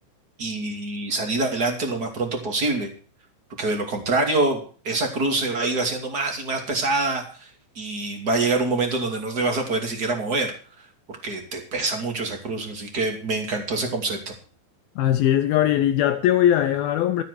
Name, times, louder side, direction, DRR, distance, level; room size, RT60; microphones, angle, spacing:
voice 1, 0.4-2.9 3.6-7.5 7.7-10.5 11.1-14.3, right 3 dB, 30° right, 2.2 m, -25 dB
voice 2, 15.0-17.2, left 11 dB, 85° left, 2.1 m, -20 dB
13.0 x 8.9 x 6.4 m
omnidirectional pair, 5.2 m